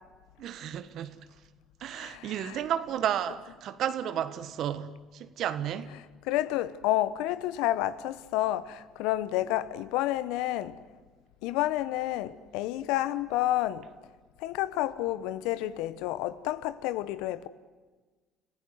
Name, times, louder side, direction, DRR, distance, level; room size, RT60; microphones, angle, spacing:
voice 1, 0.4-1.2 1.8-5.9, right 10 dB, 60° right, 1.5 m, -32 dB
voice 2, 2.0-2.6 6.3-10.7 11.4-13.8 14.4-17.5, left 14 dB, 75° left, 0.9 m, -30 dB
30.0 x 16.0 x 9.5 m
hypercardioid pair, 60°, 0 cm